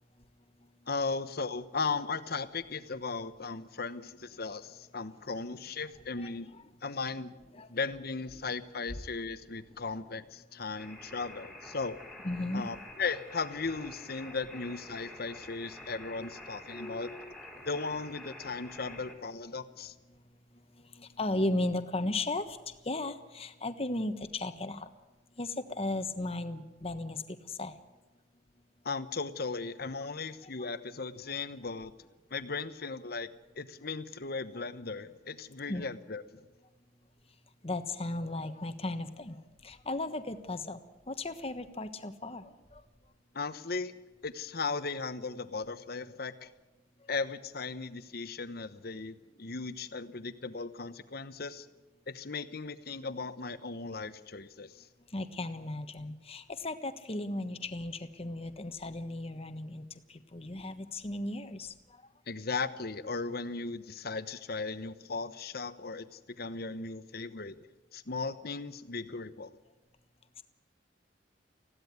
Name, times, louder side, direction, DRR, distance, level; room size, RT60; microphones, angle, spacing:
voice 1, 0.9-6.5 6.8-7.3 7.7-12.0 12.5-17.1 17.6-19.9 28.8-31.9 32.3-33.3 33.6-36.4 43.3-43.9 44.2-46.5 47.1-51.7 52.1-54.8 62.3-67.5 67.9-69.6, left 4 dB, 55° left, 12 dB, 1.1 m, -37 dB
voice 2, 6.2-6.6 7.5-7.7 8.9-9.0 9.9-10.0 10.6-10.8 12.2-12.7 15.8-15.9 16.2-16.3 16.7-17.7 18.8-18.9 20.1-24.9 25.4-27.8 30.4-30.7 35.7-35.9 37.6-40.8 41.1-42.8 55.1-62.1 70.4-70.5, left 2 dB, 35° left, 9 dB, 1.3 m, -36 dB
sound 1, 10.8-19.1, left 1 dB, 5° right, 3.2 m, -48 dB
20.5 x 15.5 x 9.5 m, 1.1 s
head